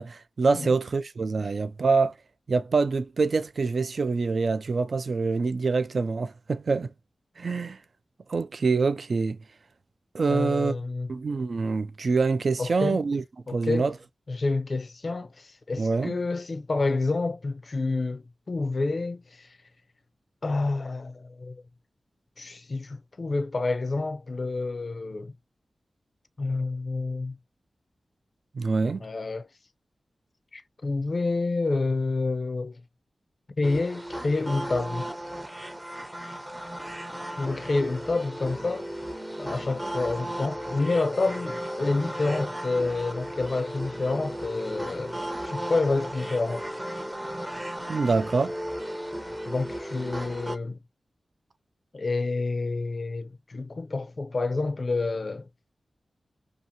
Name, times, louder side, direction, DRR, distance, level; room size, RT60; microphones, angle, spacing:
voice 1, 0.0-2.1 2.5-6.9 7.4-7.8 8.3-9.4 10.1-10.8 11.1-13.2 13.5-13.9 15.8-16.2 28.5-29.0 47.9-48.6, right 4 dB, 60° right, 0.3 m, -25 dB
voice 2, 10.3-11.1 12.6-13.0 13.5-13.9 14.3-18.2 18.5-19.5 20.4-21.6 22.4-25.3 26.4-27.4 29.0-29.5 30.5-32.8 33.6-35.1 37.4-38.9 39.4-45.2 45.4-46.7 49.5-50.8 51.9-55.5, left 3 dB, 50° left, 0.4 m, -28 dB
sound 1, 33.6-50.6, equal, 15° right, 0.5 m, -35 dB
2.7 x 2.4 x 2.6 m
wide cardioid pair, 85°, 0 cm